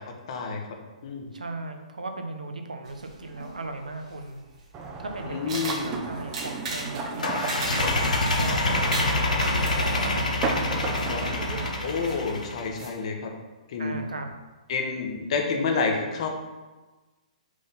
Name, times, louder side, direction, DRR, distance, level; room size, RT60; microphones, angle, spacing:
voice 1, 0.3-0.6 1.0-1.3 5.3-6.0 11.1-11.2 11.8-13.3 13.7-14.0 14.7-16.3, left 4 dB, 55° left, 2 dB, 1.2 m, -28 dB
voice 2, 1.3-4.4 5.0-8.6 9.1-11.7 13.8-14.3, right 2 dB, 85° right, 5 dB, 0.9 m, -37 dB
sound 1, 2.9-12.9, right 2 dB, 55° right, 1.7 m, -39 dB
sound 2, 4.7-11.7, right 3 dB, 25° right, 0.8 m, -34 dB
sound 3, 7.2-12.7, left 2 dB, 80° left, 1.0 m, -26 dB
5.0 x 3.8 x 5.5 m, 1.2 s
figure-of-eight pair, 125°, 4 cm